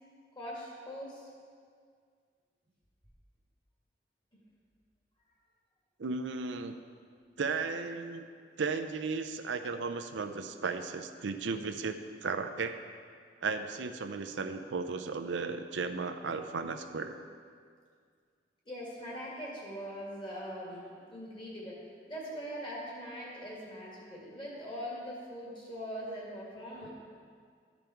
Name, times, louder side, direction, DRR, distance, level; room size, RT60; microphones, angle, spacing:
voice 1, 0.4-1.3 18.7-21.8 22.1-26.9, equal, 25° left, -5 dB, 2.1 m, -41 dB
voice 2, 6.0-6.8 7.4-8.3 8.6-12.8 13.4-17.2, right 4 dB, 85° right, 8 dB, 0.5 m, -35 dB
13.5 x 5.3 x 4.5 m, 2.1 s
head